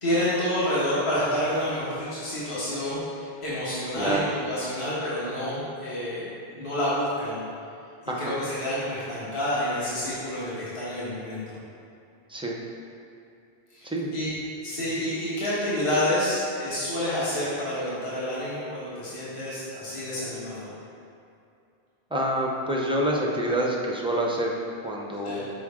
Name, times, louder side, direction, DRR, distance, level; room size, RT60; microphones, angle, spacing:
voice 1, 0.0-6.3 6.5-7.4 8.2-11.6 13.7-14.3 14.6-20.7 25.2-25.4, left 1 dB, 30° left, -10 dB, 1.4 m, -28 dB
voice 2, 22.1-25.5, right 1 dB, 5° right, -2 dB, 0.4 m, -27 dB
6.2 x 4.8 x 3.6 m, 2.5 s
omnidirectional pair, 1.1 m